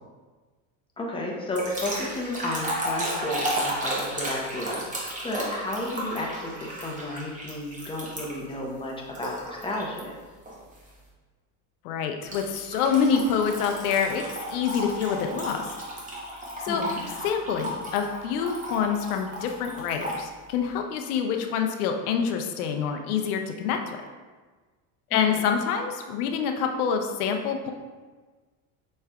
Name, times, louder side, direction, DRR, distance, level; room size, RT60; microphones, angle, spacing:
voice 1, 1.0-10.1 16.7-17.0 25.1-25.5, left 1 dB, 10° left, -1 dB, 0.7 m, -32 dB
sound 1, 1.5-8.5 9.1-10.0 10.5-10.8 12.3-20.2, equal, 20° right, 0.9 m, -34 dB
voice 2, 11.8-14.2 14.5-15.7 16.6-16.9 17.2-24.0 25.1-27.7, left 6 dB, 85° left, 4 dB, 0.6 m, -26 dB
5.6 x 3.2 x 2.3 m, 1.4 s
supercardioid pair, 115°, 43 cm